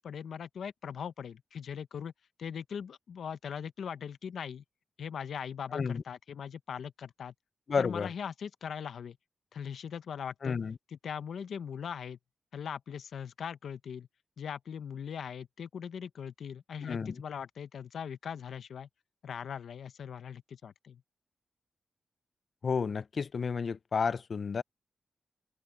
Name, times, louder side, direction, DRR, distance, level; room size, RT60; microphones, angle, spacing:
voice 1, 0.0-2.1 2.4-4.6 5.0-7.3 7.8-9.2 9.5-10.6 10.9-12.2 12.5-14.1 14.4-18.9 19.2-21.0, left 7 dB, 85° left, 0.8 m, -40 dB
voice 2, 7.7-8.1 10.4-10.8 16.8-17.2 22.6-24.6, left 5 dB, 50° left, 0.5 m, -31 dB
wide cardioid pair, 130°, 0 cm